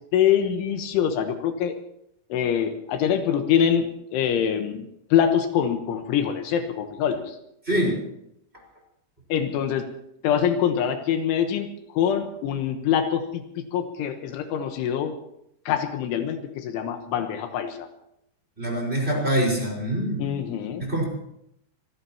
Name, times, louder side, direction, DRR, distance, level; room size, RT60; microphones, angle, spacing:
voice 1, 0.1-1.8 2.3-4.9 5.1-7.4 9.3-9.9 10.2-11.7 11.9-15.2 15.7-17.9 20.2-20.9, left 9 dB, 80° left, 6 dB, 3.5 m, -24 dB
voice 2, 7.7-8.0 18.6-20.3 20.8-21.0, right 1 dB, 10° right, -1 dB, 4.9 m, -24 dB
26.0 x 18.0 x 3.0 m, 0.78 s
omnidirectional pair, 5.7 m